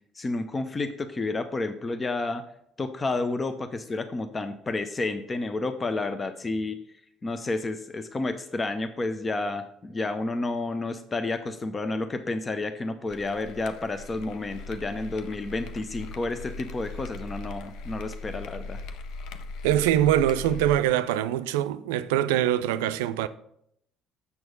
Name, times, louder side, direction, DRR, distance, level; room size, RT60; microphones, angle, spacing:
voice 1, 0.2-2.4 2.8-6.8 7.2-18.8, left 2 dB, 30° left, 0.7 m, -30 dB
sound 1, 13.1-20.9, left 3 dB, 65° left, 0.6 m, -39 dB
voice 2, 19.6-23.3, right 12 dB, 80° right, 0.4 m, -23 dB
7.1 x 6.2 x 5.3 m
hypercardioid pair, 55°, 0 cm